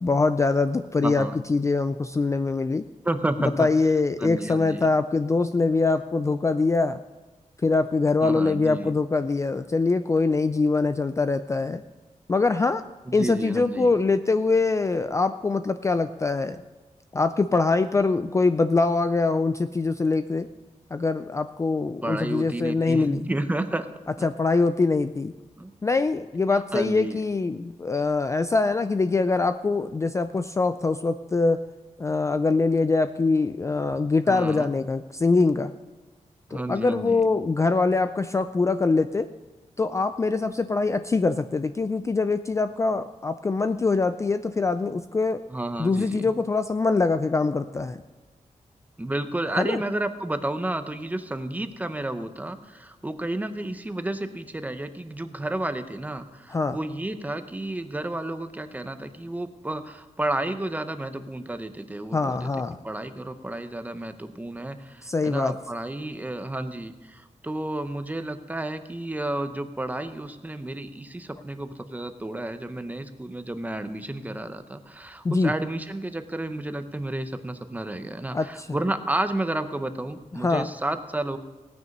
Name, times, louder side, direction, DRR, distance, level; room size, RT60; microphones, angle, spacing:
voice 1, 0.0-2.8 3.6-7.0 7.6-11.8 12.3-12.8 13.1-16.6 17.1-20.5 20.9-23.3 24.2-25.3 25.8-31.6 32.0-35.7 36.5-39.3 39.8-45.4 45.8-48.0 49.6-49.8 56.5-56.8 62.1-62.8 65.0-65.5 75.2-75.5 78.3-78.7 80.4-80.7, left 3 dB, 25° left, 10 dB, 0.3 m, -23 dB
voice 2, 1.0-1.4 3.0-3.7 4.2-4.9 8.2-8.9 13.1-13.9 22.0-23.9 24.2-24.3 25.6-25.7 26.5-27.2 34.2-34.7 36.5-37.2 45.5-46.3 49.0-62.5 62.8-81.4, right 1 dB, 10° right, 9 dB, 0.8 m, -31 dB
17.0 x 9.5 x 5.3 m, 1.2 s
wide cardioid pair, 165°, 13 cm